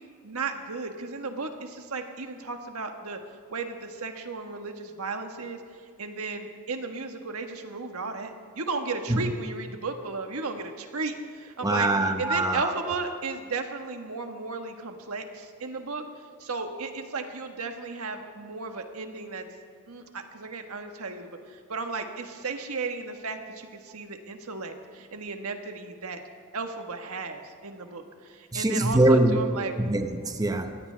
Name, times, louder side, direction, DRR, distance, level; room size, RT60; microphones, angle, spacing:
voice 1, 0.2-3.2 3.5-5.6 6.0-16.0 16.4-19.5 19.9-26.2 26.5-29.7, right 4 dB, 80° right, 5 dB, 1.4 m, -35 dB
voice 2, 11.6-12.7 28.5-30.8, right 1 dB, 15° right, 6 dB, 0.8 m, -23 dB
22.5 x 17.0 x 3.4 m, 2.2 s
head